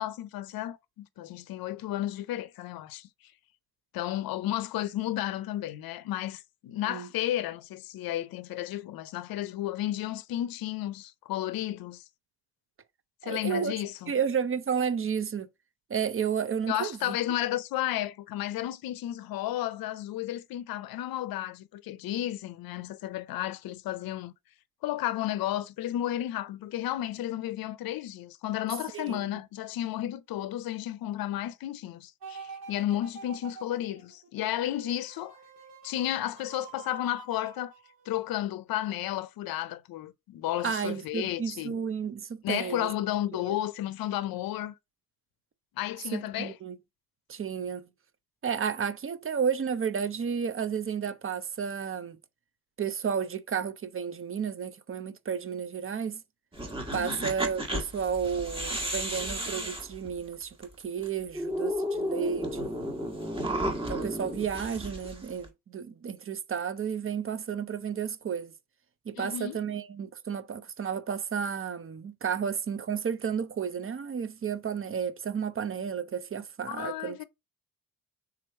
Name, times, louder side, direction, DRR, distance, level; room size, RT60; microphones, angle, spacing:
voice 1, 0.0-3.1 3.9-12.0 13.2-14.1 16.7-24.3 24.8-35.4 35.8-37.7 38.1-41.8 42.4-44.7 45.8-46.5 56.9-57.3 69.1-69.6 76.7-77.2, left 13 dB, 70° left, 0.6 m, -33 dB
voice 2, 13.2-13.7 14.1-15.5 15.9-17.2 28.9-29.3 40.6-42.9 43.3-43.6 46.1-46.8 47.3-47.9 48.4-52.2 52.8-56.2 56.9-62.8 63.9-68.5 69.1-77.2, right 7 dB, 35° right, 0.6 m, -32 dB
sound 1, 32.2-38.4 38.9-39.0, right 5 dB, 70° right, 1.6 m, -47 dB
sound 2, 56.5-60.6 61.0-61.1 61.3-65.5, equal, 15° right, 1.3 m, -33 dB
3.8 x 3.0 x 4.3 m
cardioid pair, 75°, 37 cm